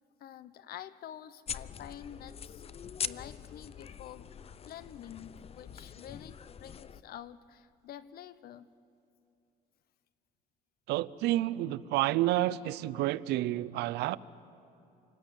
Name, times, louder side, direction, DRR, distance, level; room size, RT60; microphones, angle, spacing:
voice 1, 0.2-2.6 3.0-4.2 4.7-8.7, left 10 dB, 65° left, 15 dB, 0.9 m, -48 dB
sound 1, 1.5-7.0, left 7 dB, 35° left, 0.6 m, -43 dB
voice 2, 10.9-14.2, right 15 dB, 85° right, 18 dB, 0.6 m, -29 dB
28.5 x 19.0 x 9.1 m, 2.7 s
cardioid pair, 110°, 17 cm